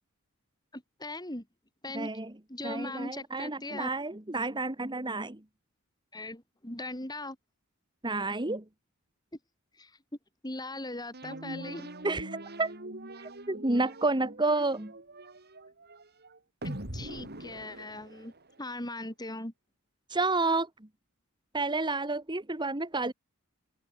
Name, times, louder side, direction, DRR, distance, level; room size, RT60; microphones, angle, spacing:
voice 1, 0.7-1.5 1.8-2.1 2.5-3.9 6.1-7.4 9.8-9.9 10.4-11.9 16.6-18.3 18.6-19.5, left 2 dB, 20° left, 5.6 m, -39 dB
voice 2, 1.9-2.3 2.6-5.4 8.0-8.6 12.0-12.7 13.2-14.9 20.1-20.9 21.5-23.1, right 3 dB, 20° right, 1.6 m, -30 dB
sound 1, 11.1-18.6, right 1 dB, 50° right, 4.7 m, -43 dB
open air
head